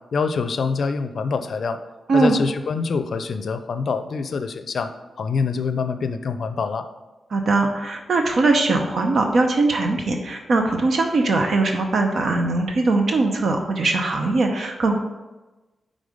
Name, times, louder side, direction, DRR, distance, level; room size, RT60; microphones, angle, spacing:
voice 1, 0.1-1.8 2.1-4.9 5.2-6.9, left 5 dB, 70° left, 10 dB, 0.4 m, -25 dB
voice 2, 7.3-15.0, right 3 dB, 70° right, 3 dB, 0.6 m, -20 dB
5.4 x 3.7 x 5.0 m, 1.1 s
cardioid pair, 60°, 0 cm